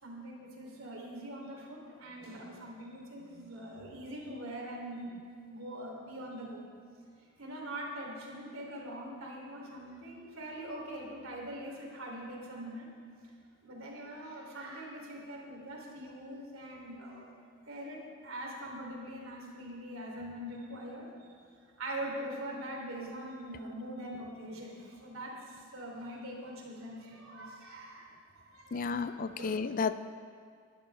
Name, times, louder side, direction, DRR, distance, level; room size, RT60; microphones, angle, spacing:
voice 1, 0.0-5.1 5.5-6.6 7.4-12.9 13.6-17.3 17.7-21.1 21.8-29.6, right 1 dB, 70° right, -1 dB, 3.0 m, -43 dB
voice 2, 28.7-29.9, left 5 dB, 40° left, 12 dB, 0.4 m, -32 dB
20.5 x 12.0 x 3.3 m, 2.2 s
head